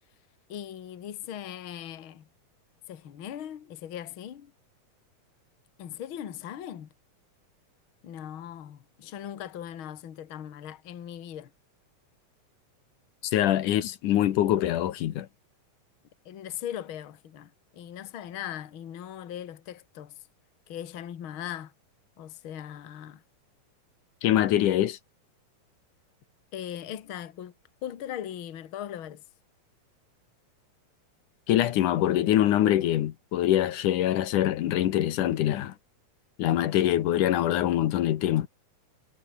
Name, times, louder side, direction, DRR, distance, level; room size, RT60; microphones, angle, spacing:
voice 1, 0.5-2.3 2.9-4.5 5.8-6.9 8.0-11.5 16.3-20.2 20.7-21.7 22.2-23.2 26.5-27.5 27.8-29.2, left 10 dB, 45° left, 2.1 m, -39 dB
voice 2, 13.2-15.3 24.2-25.0 31.5-35.8 36.4-38.5, left 12 dB, 80° left, 2.7 m, -24 dB
omnidirectional pair, 3.6 m